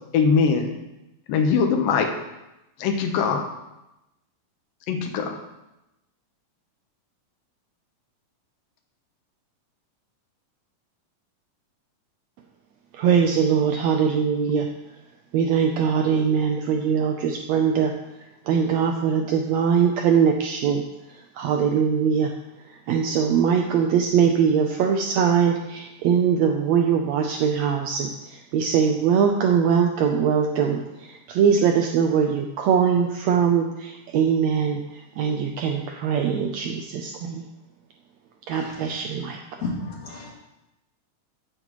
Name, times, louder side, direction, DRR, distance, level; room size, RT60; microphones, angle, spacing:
voice 1, 0.1-0.7 1.3-2.1 2.8-3.4 4.9-5.4, left 5 dB, 80° left, 3 dB, 2.7 m, -21 dB
voice 2, 12.9-14.7 15.3-20.8 21.1-22.3 22.6-37.4 38.5-39.7, right 7 dB, 85° right, 3 dB, 1.5 m, -22 dB
voice 3, 39.6-40.3, left 3 dB, 65° left, -2 dB, 3.7 m, -31 dB
14.5 x 8.4 x 3.1 m, 0.93 s
omnidirectional pair, 4.0 m